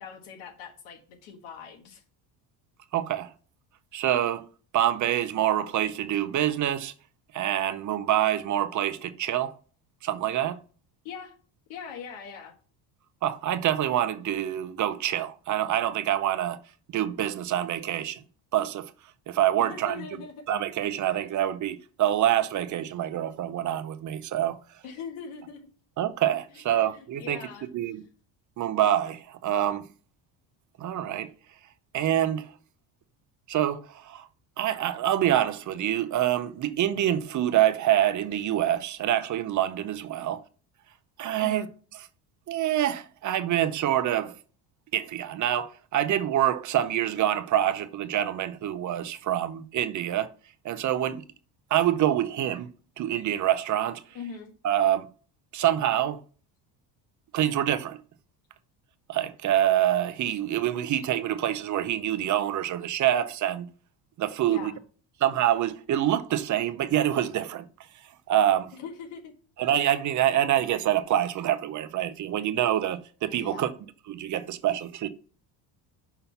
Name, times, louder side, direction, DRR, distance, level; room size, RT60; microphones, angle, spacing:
voice 1, 0.0-2.0 11.0-11.4 11.7-12.5 19.6-20.5 24.8-25.6 26.5-27.7 41.4-41.7 54.1-54.5 64.5-64.8 68.7-69.3 73.4-73.7, left 6 dB, 80° left, 1.5 m, -41 dB
voice 2, 2.9-3.3 3.9-4.4 4.7-6.9 7.3-9.5 10.0-10.6 13.2-16.6 16.9-18.2 18.5-18.9 19.3-20.0 20.5-24.6 26.0-27.4 27.7-28.0 28.6-29.9 30.8-31.3 31.9-32.5 33.5-34.3 34.6-40.4 41.2-41.7 42.5-44.4 44.9-50.3 50.6-51.2 51.7-52.7 53.0-54.0 54.6-55.1 55.5-56.2 57.3-58.0 59.1-63.7 64.2-64.7 65.2-67.6 68.3-68.7 69.6-73.7 74.1-75.1, right 11 dB, 40° right, 0.6 m, -26 dB
5.7 x 5.5 x 5.6 m
cardioid pair, 130°, 46 cm